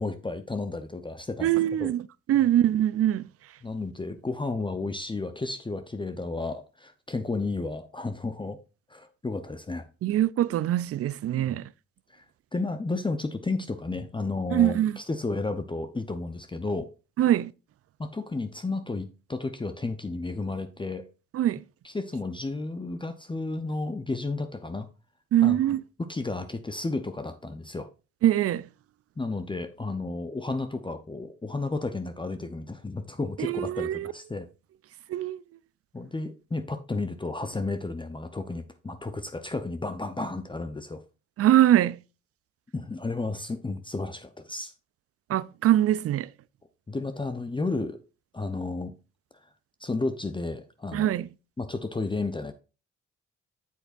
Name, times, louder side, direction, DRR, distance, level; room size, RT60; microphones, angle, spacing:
voice 1, 0.0-1.5 1.8-1.9 3.6-8.6 8.9-9.9 11.3-11.6 12.1-12.2 12.5-16.9 18.0-21.0 21.8-24.9 25.4-25.6 26.0-27.9 29.2-34.5 35.9-41.0 42.7-44.7 46.9-48.0 48.3-48.9 49.8-51.1 51.6-52.5, left 3 dB, 15° left, 0.7 m, -32 dB
voice 2, 1.4-2.0 2.3-3.3 10.0-11.7 14.5-15.0 17.2-17.5 21.3-21.6 25.3-25.8 28.2-28.7 33.4-34.1 35.1-35.4 41.4-42.0 45.3-46.3 50.9-51.3, right 12 dB, 55° right, 0.4 m, -23 dB
8.2 x 6.9 x 2.5 m
supercardioid pair, 50°, 29 cm